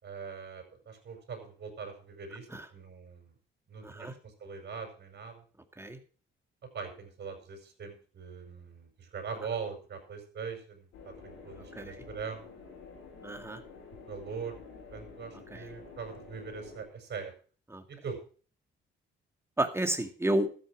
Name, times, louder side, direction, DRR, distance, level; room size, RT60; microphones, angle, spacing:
voice 1, 0.0-3.3 3.7-5.4 6.7-12.4 14.1-14.6 14.9-17.3 17.9-18.2, right 5 dB, 55° right, 4 dB, 5.1 m, -42 dB
voice 2, 3.8-4.1 5.8-6.0 11.6-12.0 13.2-13.6 15.5-15.6 17.7-17.8 19.6-20.5, right 1 dB, 10° right, 7 dB, 2.1 m, -31 dB
sound 1, 10.9-16.8, left 4 dB, 90° left, 5.4 m, -49 dB
13.0 x 8.6 x 6.1 m, 0.41 s
cardioid pair, 90°, 20 cm